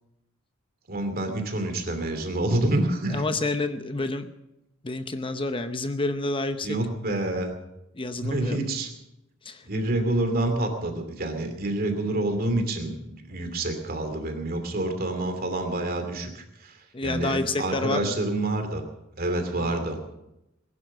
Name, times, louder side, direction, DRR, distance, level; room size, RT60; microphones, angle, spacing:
voice 1, 0.9-3.2 6.6-7.5 8.2-8.9 9.6-18.8 19.2-20.0, right 1 dB, 50° right, 6 dB, 2.7 m, -27 dB
voice 2, 3.1-4.3 4.8-6.8 7.9-8.6 9.4-9.7 13.3-13.5 16.9-18.2 19.6-19.8, left 2 dB, 25° left, 9 dB, 0.8 m, -29 dB
19.5 x 11.0 x 6.4 m, 0.89 s
head